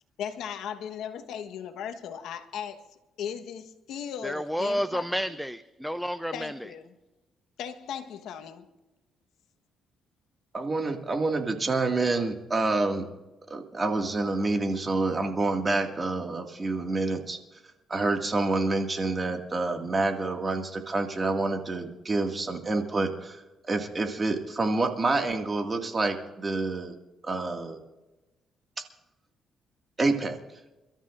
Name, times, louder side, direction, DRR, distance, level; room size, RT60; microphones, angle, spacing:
voice 1, 0.2-2.8 3.2-5.1 6.3-6.9 7.6-8.7, left 8 dB, 80° left, 1.2 m, -37 dB
voice 2, 4.2-6.7, equal, ahead, 0.5 m, -30 dB
voice 3, 10.5-13.1 13.5-17.4 17.9-27.0 27.2-27.8 28.8-28.9 30.0-30.4, right 3 dB, 30° right, 2.0 m, -28 dB
29.5 x 13.0 x 2.6 m
cardioid pair, 90°, 0 cm